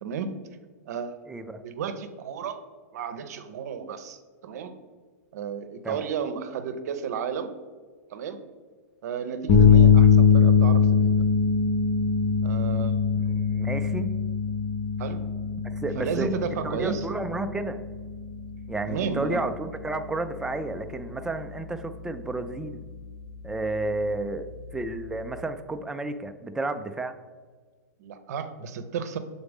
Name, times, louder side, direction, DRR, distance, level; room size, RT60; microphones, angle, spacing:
voice 1, 0.0-0.4 0.9-1.3 1.6-2.6 2.9-4.8 5.3-7.5 8.1-8.4 9.0-11.1 12.4-13.0 15.0-15.2 16.0-17.1 18.9-19.4 28.0-29.2, right 6 dB, 65° right, 9 dB, 0.7 m, -33 dB
voice 2, 1.3-1.6 5.8-6.1 13.2-14.1 15.6-16.3 16.6-17.8 18.7-22.8 23.4-24.5 24.7-27.1, right 2 dB, 5° right, 8 dB, 0.3 m, -31 dB
sound 1, 9.5-25.4, left 6 dB, 35° left, 0.6 m, -23 dB
6.9 x 4.0 x 3.5 m, 1.5 s
hypercardioid pair, 130°, 9 cm